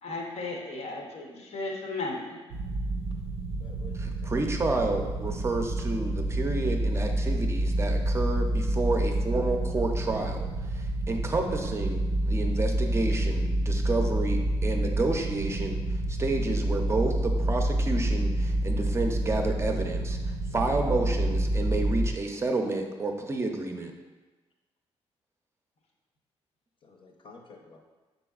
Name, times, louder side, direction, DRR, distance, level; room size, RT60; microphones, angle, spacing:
voice 1, 0.0-2.4, left 2 dB, 90° left, 0 dB, 0.8 m, -35 dB
sound 1, 2.5-22.1, right 1 dB, 85° right, 0.5 m, -28 dB
voice 2, 3.6-4.3 26.8-27.8, left 4 dB, 50° left, 2 dB, 0.6 m, -51 dB
voice 3, 4.3-15.8 16.1-23.9, right 2 dB, 25° right, 3 dB, 0.4 m, -30 dB
5.2 x 3.9 x 2.3 m, 1.2 s
cardioid pair, 110°, 10 cm